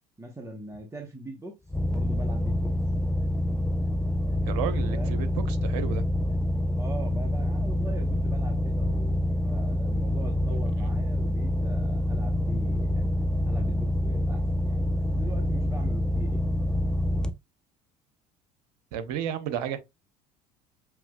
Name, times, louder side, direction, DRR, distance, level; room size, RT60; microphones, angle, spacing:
voice 1, 0.2-1.6 1.9-2.7 4.9-5.2 6.7-13.1 13.5-16.4, right 1 dB, 15° right, 1.1 m, -42 dB
sound 1, 1.7-17.3, left 1 dB, 5° left, 0.6 m, -26 dB
voice 2, 4.4-6.0 18.9-19.8, right 9 dB, 70° right, 0.8 m, -32 dB
7.1 x 3.0 x 2.3 m
hypercardioid pair, 65°, 21 cm